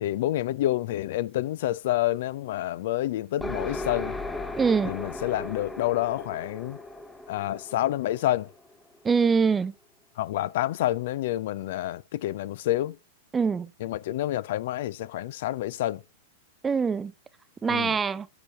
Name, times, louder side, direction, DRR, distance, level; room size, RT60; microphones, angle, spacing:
voice 1, 0.0-4.2 4.8-6.8 7.3-8.5 10.2-13.0 13.8-16.0 17.7-18.0, left 14 dB, 65° left, 0.3 m, -28 dB
sound 1, 3.4-9.0, left 2 dB, 10° left, 0.8 m, -37 dB
voice 2, 4.6-4.9 9.0-9.7 13.3-13.7 16.6-17.1 17.6-18.3, right 5 dB, 15° right, 0.4 m, -23 dB
8.0 x 6.8 x 3.4 m
hypercardioid pair, 110°, 0 cm